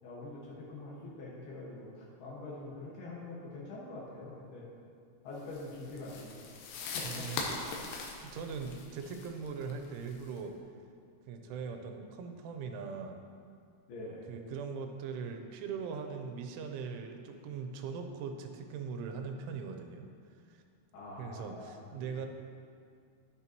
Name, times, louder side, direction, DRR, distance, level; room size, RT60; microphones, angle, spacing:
voice 1, 0.0-4.7 5.2-6.5 6.9-7.3 11.4-11.6 13.9-14.3 20.9-22.3, left 2 dB, 65° left, -6 dB, 3.3 m, -45 dB
sound 1, 5.5-10.4, left 4 dB, 80° left, 3.4 m, -41 dB
voice 2, 7.0-7.7 8.2-10.5 11.3-13.2 14.3-20.1 20.5-20.6 21.2-22.3, right 5 dB, 90° right, 5 dB, 3.2 m, -40 dB
12.0 x 9.0 x 3.0 m, 2.3 s
omnidirectional pair, 5.4 m